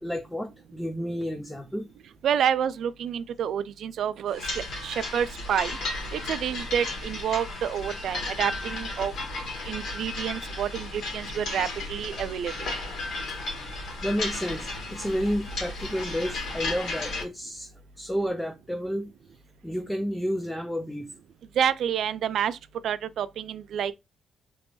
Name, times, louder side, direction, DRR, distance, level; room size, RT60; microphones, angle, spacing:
voice 1, 0.0-1.9 13.3-13.4 14.0-17.7 18.0-19.1 19.6-21.1, equal, 5° left, 0.5 m, -31 dB
voice 2, 2.2-9.1 9.7-12.7 21.6-22.6 22.8-23.9, right 9 dB, 70° right, 0.3 m, -29 dB
sound 1, 4.3-17.2, left 2 dB, 65° left, 1.7 m, -34 dB
3.0 x 2.6 x 3.0 m
cardioid pair, 90°, 0 cm